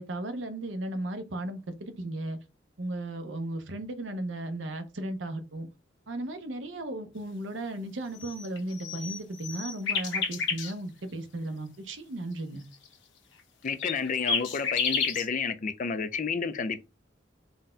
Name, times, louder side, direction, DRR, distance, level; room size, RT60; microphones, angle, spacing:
voice 1, 0.0-2.4 2.8-5.7 6.1-12.6, right 1 dB, 80° right, 0.7 m, -35 dB
sound 1, 8.2-10.7 13.8-15.3, left 5 dB, 75° left, 0.9 m, -31 dB
voice 2, 13.6-16.8, left 5 dB, 45° left, 0.4 m, -30 dB
4.0 x 2.2 x 3.7 m
head